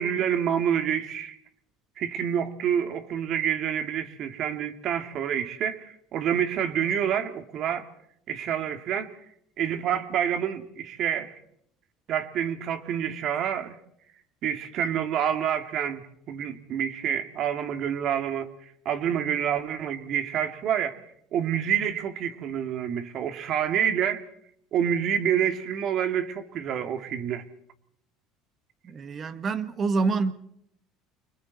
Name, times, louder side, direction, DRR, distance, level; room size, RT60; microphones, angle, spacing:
voice 1, 0.0-1.4 2.0-7.9 8.3-9.2 9.6-11.3 12.1-13.8 14.4-18.5 18.8-21.0 21.3-24.2 24.7-27.5, right 9 dB, 55° right, 2.4 m, -27 dB
voice 2, 28.8-30.3, right 4 dB, 35° right, 1.6 m, -26 dB
30.0 x 26.0 x 4.2 m
supercardioid pair, 95°, 0 cm